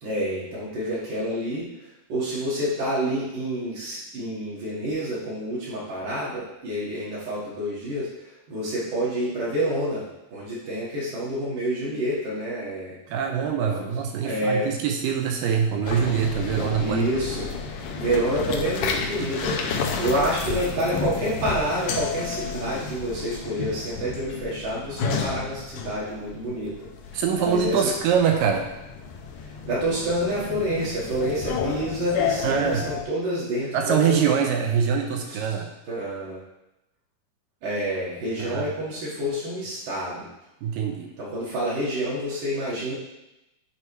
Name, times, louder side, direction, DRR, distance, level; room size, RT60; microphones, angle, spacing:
voice 1, 0.0-13.0 13.6-13.9 14.2-14.7 16.8-17.5 18.0-26.9 27.4-27.9 29.7-34.3 35.2-35.4 35.9-36.4 37.6-40.3 41.2-42.9, equal, 65° right, -8 dB, 2.7 m, -28 dB
voice 2, 13.1-17.1 27.1-28.7 32.4-32.9 33.7-35.7 38.4-38.7 40.6-41.1, right 7 dB, 80° right, 3 dB, 2.1 m, -24 dB
sound 1, 15.8-33.0, left 6 dB, 90° left, 1.8 m, -32 dB
8.7 x 4.6 x 3.1 m, 0.92 s
omnidirectional pair, 4.4 m